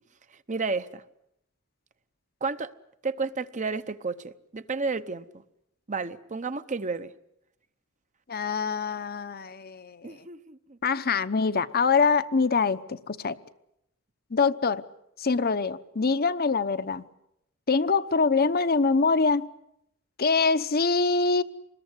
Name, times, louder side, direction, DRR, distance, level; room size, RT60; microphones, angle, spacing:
voice 1, 0.5-1.0 2.4-2.7 3.0-5.2 5.9-7.1 10.0-10.8, right 4 dB, 35° right, 0.9 m, -31 dB
voice 2, 8.3-10.2 10.8-13.4 14.3-14.8 15.2-17.0 17.7-19.5 20.2-21.4, left 4 dB, 45° left, 0.9 m, -24 dB
25.5 x 21.0 x 8.1 m
head